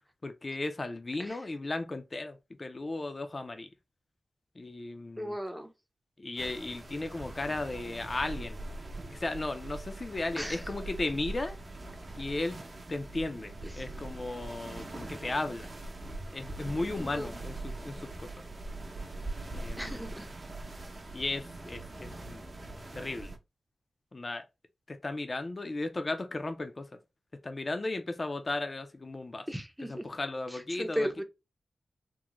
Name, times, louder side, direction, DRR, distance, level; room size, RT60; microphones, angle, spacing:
voice 1, 0.2-3.7 4.6-5.3 6.2-8.6 9.1-11.6 12.2-12.6 12.9-15.7 16.3-17.5 17.8-18.3 19.5-20.1 21.1-22.4 22.9-23.3 24.1-24.4 24.9-26.9 27.4-29.5 29.9-31.1, left 2 dB, 40° left, 0.5 m, -35 dB
voice 2, 5.2-5.7 10.4-10.6 13.6-13.8 17.0-17.4 19.8-20.3 29.5-30.1 30.5-31.2, equal, 5° right, 0.6 m, -37 dB
sound 1, 6.4-23.4, right 2 dB, 45° right, 0.8 m, -42 dB
3.7 x 2.1 x 2.9 m
wide cardioid pair, 70°, 0 cm